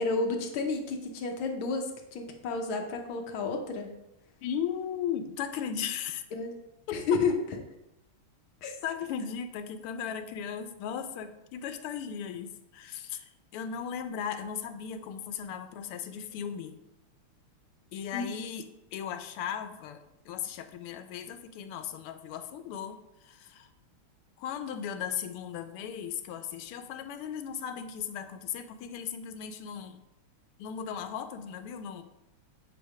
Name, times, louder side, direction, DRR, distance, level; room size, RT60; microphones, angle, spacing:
voice 1, 0.0-4.0 6.3-6.5 6.9-7.4 8.6-8.8 18.1-18.3, left 4 dB, 75° left, 4 dB, 1.5 m, -31 dB
voice 2, 4.4-6.2 6.9-7.0 8.8-16.8 17.9-23.7 24.4-30.0 30.6-32.0, left 8 dB, 90° left, 9 dB, 1.5 m, -37 dB
8.3 x 2.9 x 4.7 m, 0.87 s
omnidirectional pair, 2.4 m